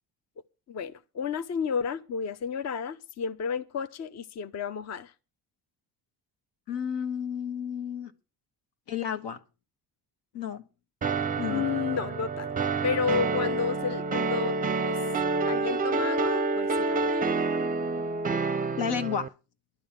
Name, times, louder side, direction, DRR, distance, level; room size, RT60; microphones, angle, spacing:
voice 1, 0.7-5.1 11.5-12.5 12.8-14.5 14.8-15.0 15.5-17.3, left 6 dB, 40° left, 0.7 m, -31 dB
voice 2, 6.7-8.1 8.9-9.4 10.3-10.6 11.4-11.7 18.8-19.3, left 8 dB, 85° left, 1.6 m, -31 dB
sound 1, 11.0-19.3, right 3 dB, 20° right, 0.5 m, -28 dB
11.5 x 7.0 x 7.5 m
cardioid pair, 125°, 41 cm